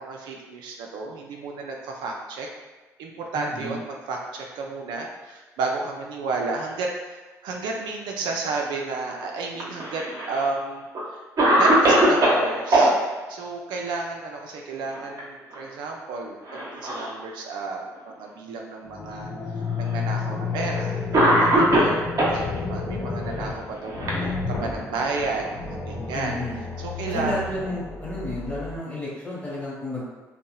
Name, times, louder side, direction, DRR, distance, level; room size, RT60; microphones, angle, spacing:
voice 1, 0.0-2.5 3.0-11.2 11.6-12.9 13.3-26.4 26.8-27.4, right 3 dB, 75° right, 0 dB, 0.3 m, -32 dB
voice 2, 3.3-3.7 26.1-26.6 27.1-30.0, left 1 dB, 20° left, -6 dB, 1.1 m, -31 dB
Cough, 9.5-10.4 10.9-11.0 11.4-12.9 14.8-15.2 15.5-15.6 16.5-17.2 17.9-18.0 19.1-19.2 20.3-20.5 21.1-22.4 23.3-24.8, right 1 dB, 50° right, 0.7 m, -21 dB
sound 1, 18.9-28.8, left 4 dB, 45° left, 0.4 m, -31 dB
2.7 x 2.0 x 2.3 m, 1.2 s
hypercardioid pair, 55°, 8 cm